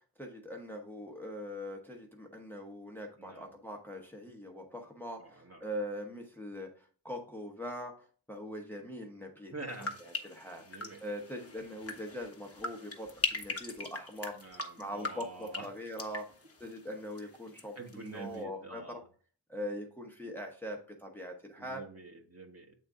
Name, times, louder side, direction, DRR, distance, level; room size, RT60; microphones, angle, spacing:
voice 1, 0.2-9.5 9.8-9.9 10.2-10.6 11.0-14.3 14.8-16.2 16.6-19.0 19.5-21.8, equal, 5° left, 1 dB, 0.9 m, -42 dB
voice 2, 3.2-3.5 5.2-5.6 9.5-10.0 10.7-11.0 14.3-15.7 17.7-19.0 21.6-22.7, right 3 dB, 30° right, 1 dB, 1.4 m, -46 dB
sound 1, 9.7-17.6 17.9-18.4, left 3 dB, 30° left, 1.0 m, -41 dB
8.0 x 3.7 x 3.6 m, 0.43 s
wide cardioid pair, 75°, 46 cm